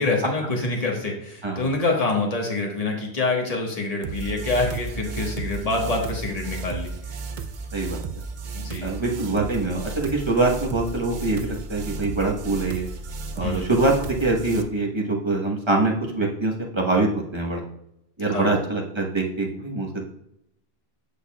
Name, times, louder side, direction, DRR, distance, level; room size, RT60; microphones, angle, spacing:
voice 1, 0.0-6.9 8.5-8.9 13.4-13.7 18.3-18.6, left 3 dB, 35° left, 0 dB, 1.4 m, -26 dB
sound 1, 4.0-14.6, right 4 dB, 55° right, 0.6 m, -34 dB
voice 2, 7.7-8.0 8.8-12.9 13.3-17.6 18.2-20.0, right 2 dB, 30° right, -1 dB, 1.1 m, -24 dB
8.4 x 6.6 x 2.3 m, 0.78 s
omnidirectional pair, 1.1 m